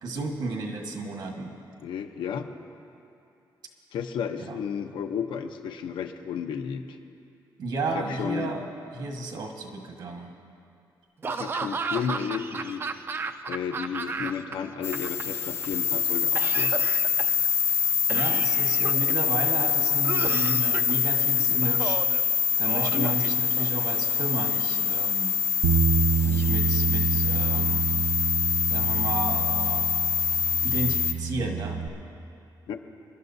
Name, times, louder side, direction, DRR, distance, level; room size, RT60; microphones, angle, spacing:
voice 1, 0.0-1.5 4.4-4.6 7.6-10.3 18.1-22.0 22.6-25.4 26.2-27.9 28.7-29.9 30.6-31.8, right 3 dB, 60° right, 2 dB, 1.5 m, -32 dB
voice 2, 1.8-2.5 3.9-7.0 7.9-8.5 11.2-16.9 22.9-23.1 32.7-32.8, left 7 dB, 80° left, 5 dB, 0.9 m, -33 dB
Laughter / Cough, 11.2-14.5 14.8-15.7 16.4-17.5 18.1-19.3 20.0-21.0 21.6-22.2 22.6-23.8, right 4 dB, 30° right, 0.4 m, -33 dB
sound 1, 14.8-31.1, left 7 dB, 30° left, 0.4 m, -25 dB
Bass guitar, 25.6-31.9, right 6 dB, 80° right, 0.7 m, -27 dB
28.0 x 11.5 x 2.7 m, 2.6 s
wide cardioid pair, 155°, 8 cm